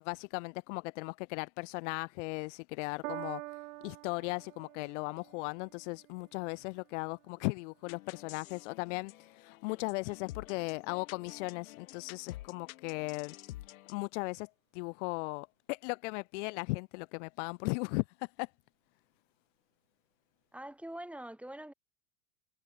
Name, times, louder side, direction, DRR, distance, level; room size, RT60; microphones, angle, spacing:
voice 1, 0.0-3.4 3.8-13.4 13.9-18.5, left 28 dB, 55° left, 0.8 m, -37 dB
Piano, 3.0-9.6 10.4-10.5, right 17 dB, 70° right, 1.8 m, -49 dB
sound 1, 7.9-14.0, left 15 dB, 75° left, 3.3 m, -50 dB
voice 2, 20.5-21.7, right 1 dB, 5° right, 6.4 m, -44 dB
hypercardioid pair, 105°, 42 cm